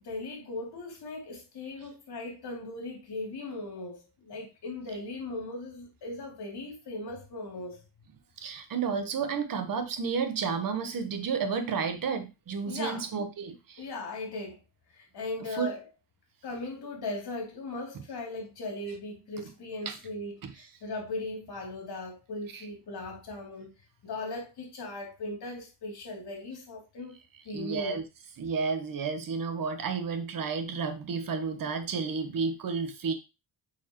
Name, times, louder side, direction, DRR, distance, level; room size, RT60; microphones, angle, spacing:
voice 1, 0.0-7.8 12.7-13.0 13.8-14.6 14.9-15.8 16.4-23.7 24.0-27.2 27.4-28.0, left 2 dB, 60° left, 3.0 m, -38 dB
voice 2, 8.4-13.9 15.5-15.7 19.8-20.0 20.4-20.5 22.5-22.7 27.5-28.0 28.4-33.1, right 5 dB, 50° right, 1.2 m, -31 dB
8.6 x 4.6 x 3.0 m
wide cardioid pair, 160°, 42 cm